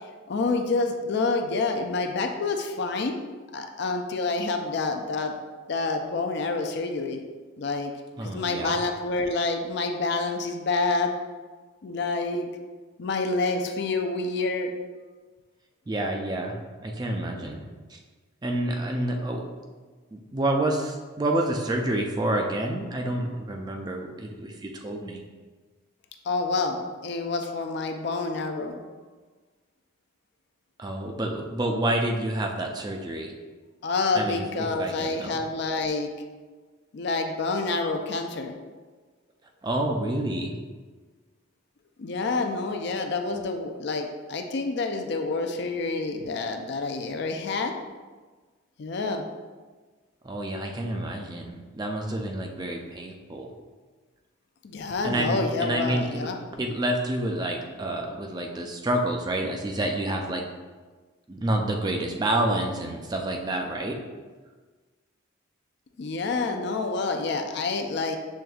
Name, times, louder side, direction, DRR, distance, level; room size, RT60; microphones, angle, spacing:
voice 1, 0.3-3.2 3.5-5.3 5.7-7.2 7.6-7.9 8.2-11.1 11.8-12.5 13.0-14.7 26.3-28.8 33.8-36.1 36.9-38.5 42.0-47.7 48.8-49.2 54.6-56.4 66.0-68.2, left 3 dB, 55° left, 5 dB, 0.4 m, -28 dB
voice 2, 8.2-8.8 15.9-16.6 16.8-17.6 17.9-18.0 18.4-19.5 20.1-25.2 30.8-33.3 34.1-35.4 39.6-40.5 50.2-53.5 55.0-56.3 56.6-60.4 61.3-64.0, right 1 dB, 20° right, 2 dB, 0.3 m, -28 dB
6.4 x 3.4 x 2.3 m, 1.4 s
head